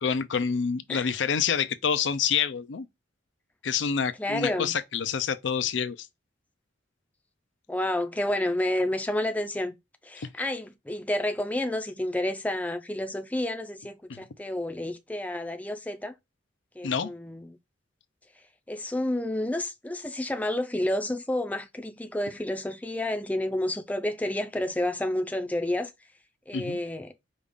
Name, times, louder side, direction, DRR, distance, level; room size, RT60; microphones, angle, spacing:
voice 1, 0.0-2.9 3.6-6.0 10.2-10.3 14.1-14.2 16.8-17.1 26.5-26.8, left 6 dB, 70° left, 0.5 m, -27 dB
voice 2, 4.2-4.7 7.7-9.7 10.0-16.1 16.8-17.6 18.7-25.9 26.5-27.1, left 1 dB, 10° left, 0.5 m, -30 dB
5.2 x 2.4 x 3.5 m
head